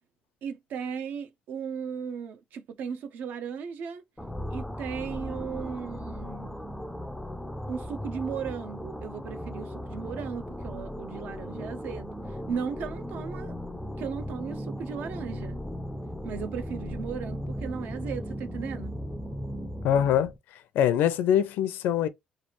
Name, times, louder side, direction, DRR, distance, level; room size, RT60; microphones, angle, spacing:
voice 1, 0.4-4.0 4.5-6.6 7.7-12.2 12.5-13.5 14.0-15.6 16.2-19.0, right 7 dB, 65° right, 0.6 m, -36 dB
sound 1, 4.2-20.4, equal, 5° left, 0.3 m, -37 dB
voice 2, 19.8-20.3 20.7-22.1, left 10 dB, 85° left, 0.5 m, -23 dB
3.2 x 2.4 x 3.0 m
cardioid pair, 145°, 3 cm